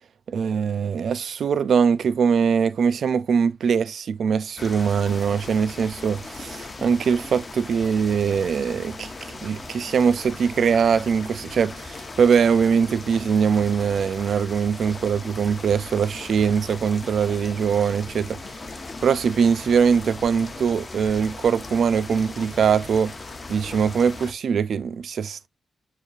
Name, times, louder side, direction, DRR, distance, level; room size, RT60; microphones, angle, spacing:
voice 1, 0.3-18.4 19.0-23.1 23.5-25.5, right 6 dB, 75° right, 0.4 m, -22 dB
sound 1, 4.6-24.3, left 3 dB, 40° left, 0.9 m, -38 dB
7.0 x 3.0 x 2.4 m
cardioid pair, 75°, 0 cm